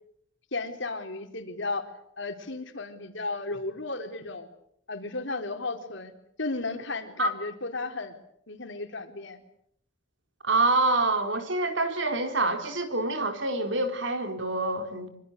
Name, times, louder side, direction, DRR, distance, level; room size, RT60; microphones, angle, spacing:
voice 1, 0.5-1.9 2.2-4.5 4.9-6.1 6.4-8.1 8.5-9.4, left 3 dB, 65° left, 6 dB, 4.0 m, -34 dB
voice 2, 10.4-15.1, right 2 dB, 65° right, 6 dB, 4.1 m, -26 dB
25.5 x 24.5 x 8.1 m, 0.71 s
head